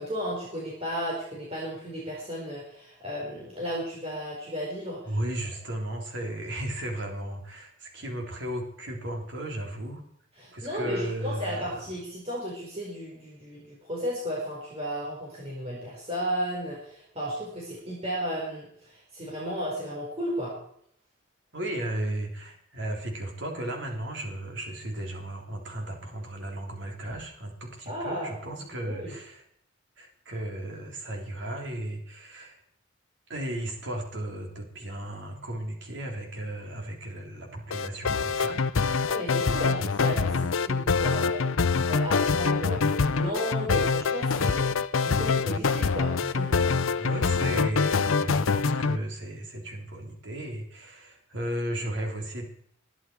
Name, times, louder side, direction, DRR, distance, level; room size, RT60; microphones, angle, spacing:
voice 1, 0.0-5.2 10.4-20.5 27.9-28.4 28.9-29.2 39.1-46.7, equal, 30° right, -5 dB, 4.9 m, -34 dB
voice 2, 5.0-10.0 10.5-11.8 21.5-29.4 30.0-32.6 33.3-38.7 47.0-52.5, right 1 dB, 60° right, 1 dB, 3.6 m, -35 dB
sound 1, 37.7-49.0, left 4 dB, 85° left, 0.7 m, -25 dB
21.0 x 11.5 x 4.8 m, 0.68 s
head